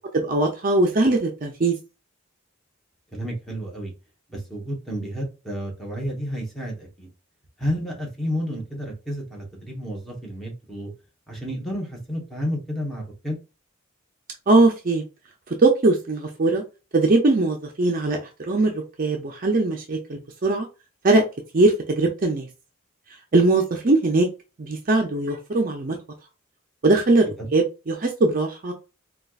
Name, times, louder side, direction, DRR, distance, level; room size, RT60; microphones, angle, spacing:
voice 1, 0.1-1.7 14.5-15.0 15.6-16.6 16.9-18.2 18.5-20.7 21.0-21.2 21.5-22.5 23.3-24.3 24.6-26.0 26.8-27.3 27.5-28.7, right 2 dB, 40° right, 2 dB, 0.5 m, -20 dB
voice 2, 3.1-3.9 4.3-7.1 7.6-10.9 11.3-13.4 27.4-27.5, equal, ahead, -3 dB, 1.0 m, -31 dB
4.3 x 2.3 x 2.3 m, 0.30 s
head